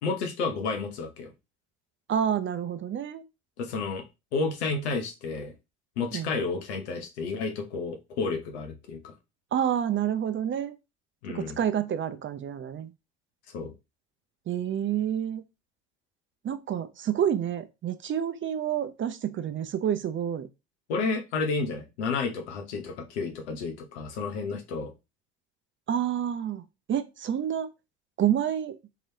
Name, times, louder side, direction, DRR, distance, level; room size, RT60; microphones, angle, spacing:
voice 1, 0.0-1.3 3.6-4.0 4.3-5.5 6.0-9.1 11.2-11.6 13.5-13.7 20.9-24.9, left 4 dB, 85° left, 0.9 m, -31 dB
voice 2, 2.1-3.2 6.1-6.3 9.5-10.7 11.3-12.9 14.5-15.4 16.4-20.5 25.9-27.7 28.2-28.8, right 9 dB, 40° right, 0.6 m, -28 dB
3.7 x 3.1 x 2.8 m
hypercardioid pair, 55°, 32 cm